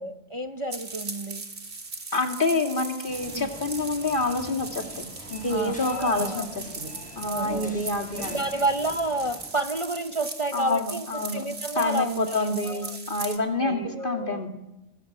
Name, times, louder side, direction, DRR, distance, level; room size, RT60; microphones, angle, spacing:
voice 1, 0.0-1.4 3.3-3.5 5.5-6.5 7.2-7.7 8.3-11.1 11.3-13.0 13.6-14.4, right 2 dB, 25° right, 7 dB, 0.9 m, -30 dB
sound 1, 0.7-13.4, right 3 dB, 75° right, 2.8 m, -39 dB
voice 2, 2.1-8.4 10.5-11.4 11.7-14.5, left 2 dB, 45° left, 3 dB, 2.9 m, -28 dB
sound 2, 3.1-9.5, equal, 5° left, 7.8 m, -44 dB
26.5 x 22.5 x 7.6 m, 1.0 s
omnidirectional pair, 1.2 m